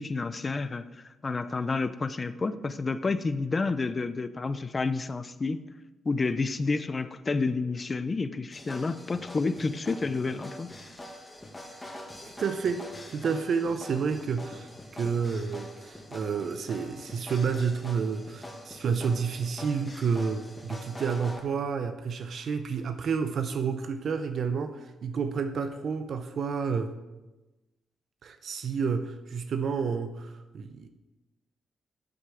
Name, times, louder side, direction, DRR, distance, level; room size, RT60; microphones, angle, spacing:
voice 1, 0.0-5.6 6.0-10.7, left 3 dB, 35° left, 0.7 m, -30 dB
sound 1, 8.5-21.4, left 1 dB, 15° left, 2.2 m, -44 dB
voice 2, 12.2-26.9 28.2-30.9, right 5 dB, 65° right, 0.8 m, -30 dB
8.8 x 8.0 x 6.3 m
cardioid pair, 70°, 0 cm